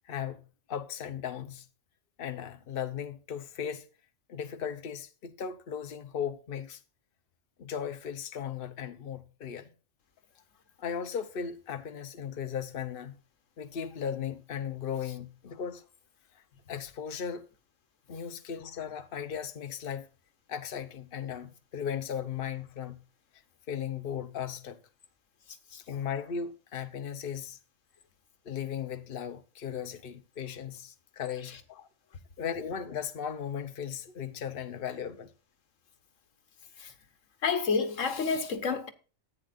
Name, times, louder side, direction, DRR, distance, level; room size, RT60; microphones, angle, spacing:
voice 1, 0.1-1.7 2.2-3.8 4.3-6.8 7.6-9.7 10.8-13.2 13.6-15.8 16.7-17.5 18.1-20.1 20.5-23.0 23.7-24.8 25.9-27.6 28.4-31.9 32.4-35.3, left 8 dB, 50° left, 1.0 m, -37 dB
voice 2, 37.4-38.9, left 5 dB, 90° left, 1.5 m, -30 dB
14.0 x 9.0 x 2.5 m
omnidirectional pair, 1.3 m